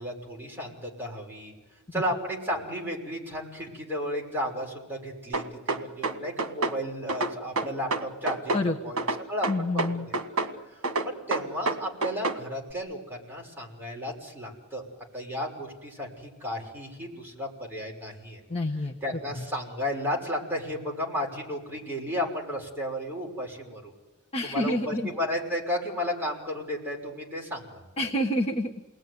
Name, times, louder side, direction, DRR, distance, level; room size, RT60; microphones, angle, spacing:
voice 1, 0.0-1.5 1.9-8.6 8.8-10.4 11.0-14.8 15.1-18.4 19.0-23.9 24.4-27.8, equal, 10° right, -2 dB, 6.0 m, -33 dB
sound 1, 5.3-6.8 7.1-8.7 9.0-10.5 10.8-12.4, right 3 dB, 70° right, 1.8 m, -28 dB
voice 2, 9.5-10.1 18.5-18.9 24.3-25.1 28.0-28.8, left 1 dB, 30° left, -1 dB, 1.5 m, -28 dB
29.0 x 20.0 x 9.7 m, 1.2 s
head